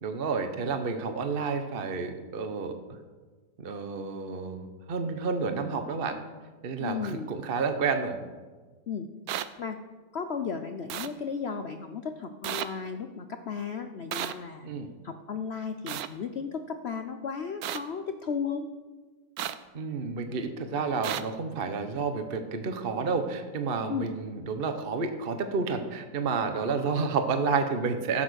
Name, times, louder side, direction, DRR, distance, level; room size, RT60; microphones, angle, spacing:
voice 1, 0.0-2.7 3.6-6.2 6.6-8.2 14.6-14.9 19.7-28.2, right 4 dB, 40° right, 7 dB, 1.0 m, -30 dB
voice 2, 6.8-7.3 8.9-9.1 9.6-9.8 10.1-14.7 15.0-18.7 23.9-24.1, left 6 dB, 60° left, 7 dB, 0.6 m, -34 dB
sound 1, 9.3-9.4 10.9-11.1 12.4-12.7 14.1-14.3 15.9-16.1 17.6-17.8 19.4-19.5 21.0-21.2, right 11 dB, 70° right, 1.0 m, -32 dB
15.5 x 6.9 x 6.3 m, 1.4 s
omnidirectional pair, 1.9 m